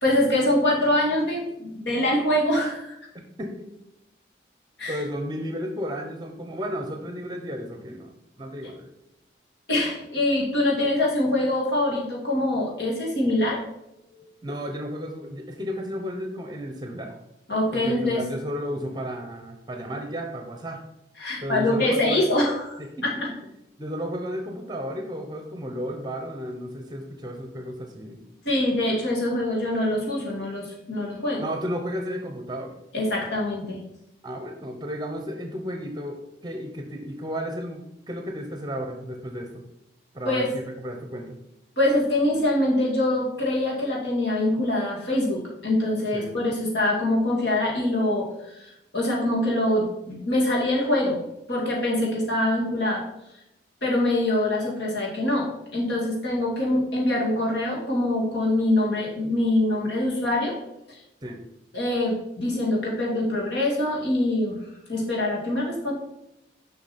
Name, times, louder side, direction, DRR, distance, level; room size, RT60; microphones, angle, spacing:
voice 1, 0.0-3.0 4.8-5.0 9.7-13.6 17.5-18.2 21.2-23.3 28.4-31.4 32.9-33.8 40.2-40.5 41.8-48.3 48.5-48.7 48.9-51.2 51.5-53.0 53.8-55.5 55.7-60.5 61.7-64.6 64.9-65.9, left 1 dB, 80° left, -3 dB, 2.4 m, -24 dB
voice 2, 3.1-3.7 4.9-8.1 8.4-8.9 14.4-17.1 17.7-20.8 21.4-22.4 22.8-23.1 23.8-28.2 31.4-32.7 34.2-39.6 40.1-41.4 46.1-46.3 61.2-61.4, equal, 25° right, 4 dB, 0.9 m, -33 dB
6.9 x 5.8 x 4.3 m, 0.85 s
head